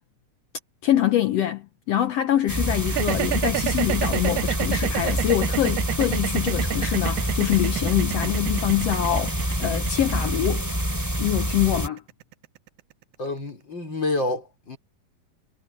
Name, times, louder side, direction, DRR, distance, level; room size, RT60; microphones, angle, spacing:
voice 1, 0.8-10.7 11.2-12.0, left 12 dB, 80° left, 1.4 m, -24 dB
sound 1, 2.5-11.9, right 1 dB, 5° right, 3.4 m, -27 dB
sound 2, 2.9-13.0, right 17 dB, 80° right, 1.8 m, -29 dB
voice 2, 13.2-14.8, left 2 dB, 30° left, 5.9 m, -28 dB
omnidirectional pair, 3.8 m